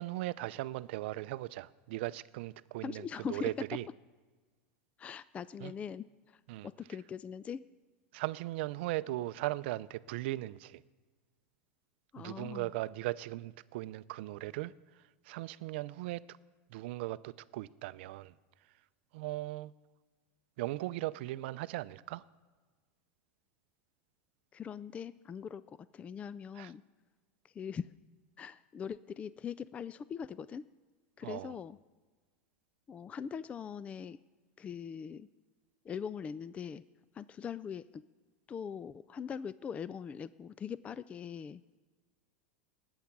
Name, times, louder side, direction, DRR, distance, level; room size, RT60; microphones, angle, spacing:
voice 1, 0.0-3.9 5.6-5.7 6.5-6.7 8.1-10.8 12.2-14.7 15.3-16.4 16.7-18.3 19.1-19.7 20.6-22.2 26.6-26.7 31.2-31.5, right 17 dB, 65° right, 0.5 m, -38 dB
voice 2, 2.8-3.5 5.0-7.6 12.1-12.7 24.5-26.8 27.4-27.9 28.4-30.7 31.2-31.8 32.9-34.2 34.6-35.3 35.8-36.8 37.1-38.0 38.5-41.6, left 7 dB, 20° left, 0.3 m, -41 dB
19.5 x 8.1 x 6.0 m
supercardioid pair, 130°, 6 cm